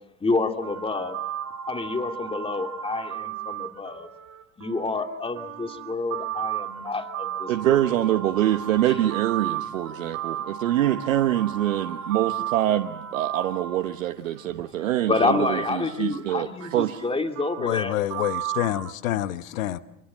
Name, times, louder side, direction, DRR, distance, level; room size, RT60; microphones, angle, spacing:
voice 1, 0.2-1.2 1.7-4.1 4.6-7.8 15.1-18.0, left 3 dB, 15° left, 2.5 m, -28 dB
sound 1, 0.6-14.4 15.1-18.9, right 10 dB, 40° right, 1.5 m, -34 dB
voice 2, 7.5-17.0, right 13 dB, 80° right, 1.3 m, -25 dB
voice 3, 17.6-19.8, left 13 dB, 80° left, 1.2 m, -27 dB
28.0 x 24.5 x 7.4 m
hypercardioid pair, 90°, 39 cm